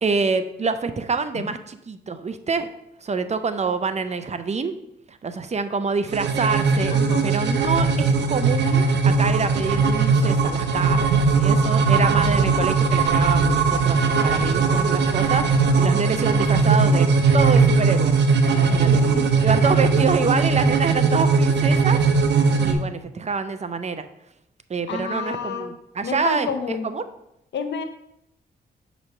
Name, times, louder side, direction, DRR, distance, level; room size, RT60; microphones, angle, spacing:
voice 1, 0.0-2.7 3.0-4.7 5.1-6.9 7.2-17.1 17.3-18.1 18.5-19.0 19.4-22.0 22.6-24.0 24.7-26.5 26.8-27.0, right 4 dB, 35° right, 11 dB, 0.6 m, -26 dB
sound 1, 6.1-22.7, right 4 dB, 70° right, 0.8 m, -19 dB
voice 2, 6.9-7.3 18.8-19.3 24.9-25.7 26.0-26.9 27.5-27.8, left 5 dB, 75° left, 7 dB, 0.8 m, -29 dB
6.3 x 3.1 x 5.7 m, 0.80 s
cardioid pair, 60°, 19 cm